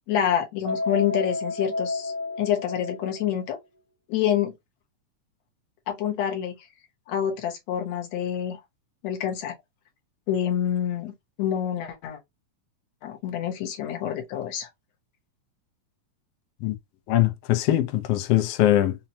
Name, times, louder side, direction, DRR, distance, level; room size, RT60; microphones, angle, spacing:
voice 1, 0.1-2.1 2.4-3.6 4.1-4.5 5.9-6.6 7.1-8.6 9.0-9.5 10.3-11.1 11.4-12.2 13.0-14.7, left 9 dB, 65° left, 2.1 m, -27 dB
sound 1, 0.7-3.5, left 3 dB, 45° right, 0.7 m, -31 dB
voice 2, 17.1-19.0, left 13 dB, 90° left, 1.3 m, -22 dB
5.6 x 2.8 x 2.8 m
omnidirectional pair, 3.7 m